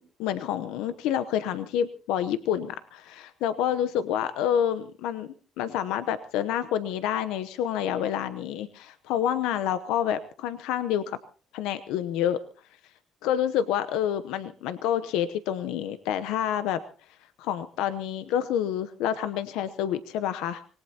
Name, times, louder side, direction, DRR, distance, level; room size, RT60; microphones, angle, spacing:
voice 1, 0.2-11.2 11.5-12.4 13.2-16.8 17.4-20.7, left 10 dB, 90° left, 12 dB, 0.8 m, -28 dB
25.5 x 19.0 x 2.9 m, 0.39 s
cardioid pair, 85°, 0 cm